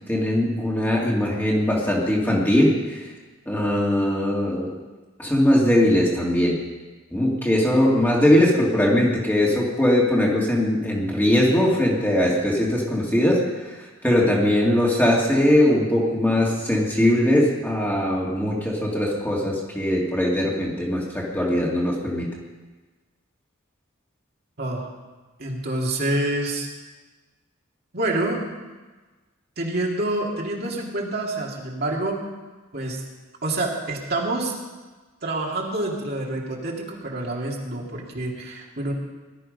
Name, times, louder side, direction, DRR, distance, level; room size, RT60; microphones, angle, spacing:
voice 1, 0.1-3.1 3.5-4.8 5.2-6.6 7.1-22.3, left 1 dB, 10° left, -3 dB, 2.5 m, -20 dB
voice 2, 24.6-24.9 25.4-26.7 27.9-28.5 29.6-32.3 32.7-33.0 33.4-34.5 35.2-38.9, right 2 dB, 50° right, -2 dB, 2.6 m, -27 dB
18.5 x 12.0 x 5.5 m, 1.3 s
head